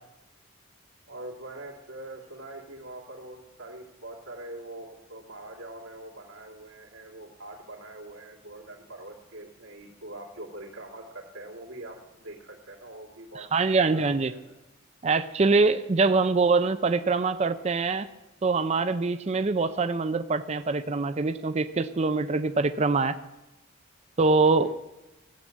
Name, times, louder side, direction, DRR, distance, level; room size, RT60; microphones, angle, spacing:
voice 1, 1.1-13.5 13.8-14.6 24.4-24.7, right 1 dB, 85° right, -3 dB, 2.9 m, -43 dB
voice 2, 13.5-14.3 15.0-18.1 18.4-23.2 24.2-24.7, right 3 dB, 30° right, 10 dB, 0.4 m, -24 dB
15.5 x 8.6 x 7.4 m, 0.97 s
head